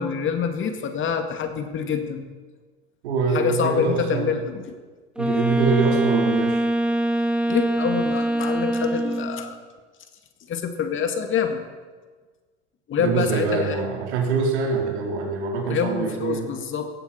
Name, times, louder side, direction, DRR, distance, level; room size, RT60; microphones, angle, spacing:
voice 1, 0.0-2.2 3.3-4.7 7.5-9.6 10.5-11.6 12.9-13.8 15.7-16.9, left 6 dB, 35° left, 6 dB, 2.1 m, -26 dB
voice 2, 3.0-4.3 5.2-6.7 13.0-16.5, right 5 dB, 70° right, 0 dB, 4.0 m, -24 dB
Wind instrument woodwind instrument, 5.2-9.5, right 1 dB, 5° right, 1.6 m, -23 dB
18.0 x 15.0 x 4.5 m, 1.4 s
hypercardioid pair, 90°, 34 cm